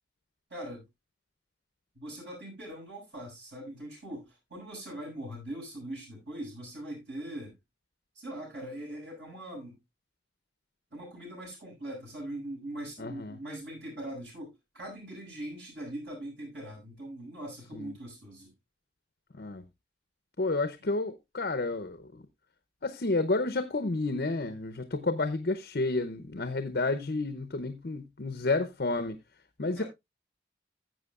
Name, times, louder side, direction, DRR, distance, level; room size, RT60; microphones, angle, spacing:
voice 1, 0.5-0.9 1.9-7.6 8.1-9.8 10.9-18.5 29.7-29.9, right 1 dB, 80° right, 7.0 m, -41 dB
voice 2, 13.0-13.4 17.7-18.0 19.4-19.6 20.4-22.0 22.8-29.2 29.6-29.8, left 3 dB, 60° left, 0.7 m, -30 dB
15.0 x 7.6 x 2.4 m
head